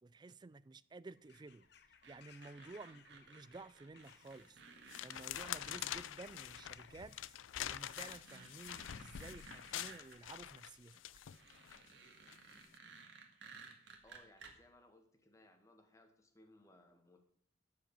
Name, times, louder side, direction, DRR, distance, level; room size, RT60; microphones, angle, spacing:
voice 1, 0.0-1.7 2.1-4.6 5.0-11.0, right 3 dB, 20° right, 0.3 m, -53 dB
Bird vocalization bird call bird song / Crow, 1.1-11.0, left 7 dB, 60° left, 0.8 m, -65 dB
sound 1, 2.0-5.9 7.1-7.2 7.6-10.2 11.1-14.5, right 4 dB, 70° right, 1.7 m, -57 dB
sound 2, 4.1-4.4 4.9-11.8 12.3-12.5, left 11 dB, 90° left, 0.4 m, -46 dB
voice 2, 14.0-17.3, left 1 dB, 15° left, 1.2 m, -64 dB
13.0 x 5.0 x 6.9 m
head